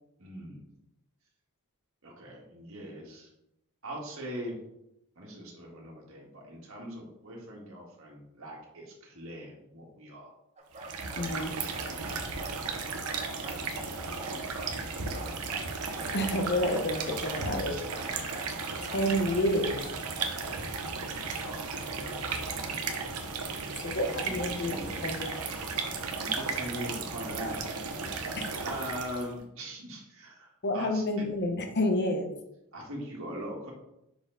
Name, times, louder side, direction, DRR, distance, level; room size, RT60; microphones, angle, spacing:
voice 1, 0.2-0.7 2.0-3.3 3.8-4.6 5.2-10.3 11.3-12.1 13.7-13.8 17.2-17.8 20.1-22.6 23.4-25.2 25.9-31.0 32.7-33.7, equal, 65° right, -2 dB, 1.7 m, -42 dB
sound 1, 10.6-11.3 11.7-12.6 13.1-13.6 14.2-14.8 15.1-16.2 16.6-17.5 17.9-18.5 18.8-19.5 19.8-20.4 21.3-21.4, right 2 dB, 30° right, 0.8 m, -45 dB
sound 2, 10.7-29.3, right 4 dB, 90° right, 0.9 m, -35 dB
voice 2, 11.2-11.5 16.1-17.7 18.8-19.8 23.8-25.4 28.4-28.5 30.6-32.3, left 1 dB, 50° left, 5 dB, 0.9 m, -29 dB
5.8 x 4.4 x 3.8 m, 0.82 s
head